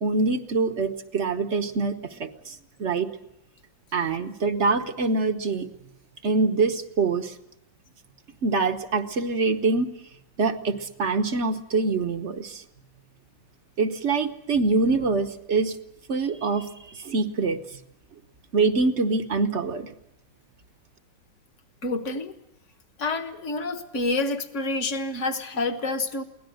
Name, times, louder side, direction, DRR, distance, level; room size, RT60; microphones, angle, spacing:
voice 1, 0.0-3.1 3.9-5.7 6.2-7.3 8.4-9.9 10.4-12.6 13.8-15.8 16.1-17.6 18.5-19.9, right 4 dB, 45° right, 8 dB, 1.2 m, -25 dB
voice 2, 21.8-22.3 23.0-26.2, left 2 dB, 45° left, 9 dB, 1.6 m, -28 dB
23.5 x 17.5 x 7.8 m, 0.82 s
omnidirectional pair, 2.0 m